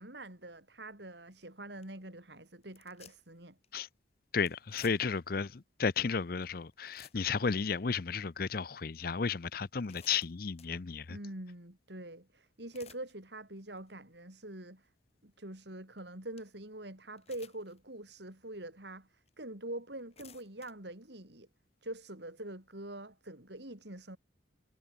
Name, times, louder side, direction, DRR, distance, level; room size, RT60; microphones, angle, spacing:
voice 1, 0.0-3.6 11.1-14.9 15.2-21.5 21.8-24.2, right 1 dB, 60° right, 4.2 m, -45 dB
sound 1, 1.3-1.4 1.8-2.0 2.6-3.4 3.6-3.8 4.5-5.3 5.9-6.0 6.4-6.5 6.7-7.5 8.0-8.1 8.8-8.9 9.5-10.8 12.5-13.1 13.6-13.9 14.4-14.5 16.0-16.1 16.4-16.5 17.2-17.8 18.3-18.4 19.3-19.4 19.9-20.7, left 8 dB, 35° left, 3.0 m, -57 dB
voice 2, 4.3-11.2, left 5 dB, 50° left, 0.6 m, -33 dB
head